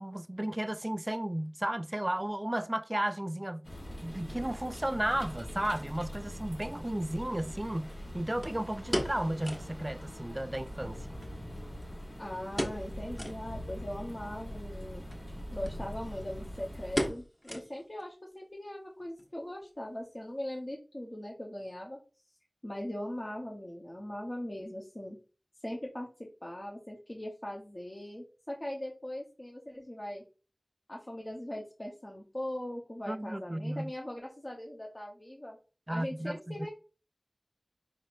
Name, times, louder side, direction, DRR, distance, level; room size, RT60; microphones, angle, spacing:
voice 1, 0.0-3.7 4.0-11.2 33.1-33.9 35.9-36.7, right 1 dB, 30° right, 0.3 m, -34 dB
sound 1, 3.6-17.1, equal, 75° left, 2.7 m, -43 dB
sound 2, 6.3-6.4 8.4-9.8 10.1-10.2 10.5-10.6 11.2-12.1 12.5-12.9 13.1-13.4 13.9-14.0 15.0-15.3 15.6-15.8 16.1-16.4 17.0-18.0 18.3-18.4 19.0-19.3 19.6-19.7, equal, 25° left, 1.2 m, -35 dB
voice 2, 12.2-15.0 15.5-22.0 22.6-25.2 25.6-26.1 26.4-30.2 30.9-35.6 35.9-36.7, left 1 dB, 40° left, 0.9 m, -40 dB
5.1 x 4.1 x 2.5 m
wide cardioid pair, 40°, 0 cm